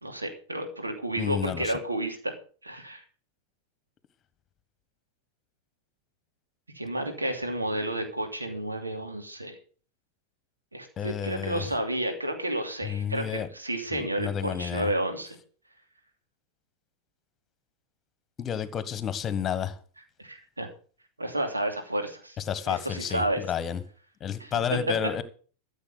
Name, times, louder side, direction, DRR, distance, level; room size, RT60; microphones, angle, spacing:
voice 1, 0.0-2.3 2.6-3.0 6.7-9.6 10.7-15.4 20.2-20.7 21.2-22.4 22.7-23.4 24.4-24.8, right 1 dB, 80° right, 2.9 m, -31 dB
voice 2, 1.2-1.7 11.0-11.7 12.8-13.5 13.9-14.9 18.4-19.8 22.5-23.8 24.2-25.2, left 8 dB, 25° left, 1.4 m, -31 dB
14.0 x 7.3 x 6.7 m
figure-of-eight pair, 90°, 0 cm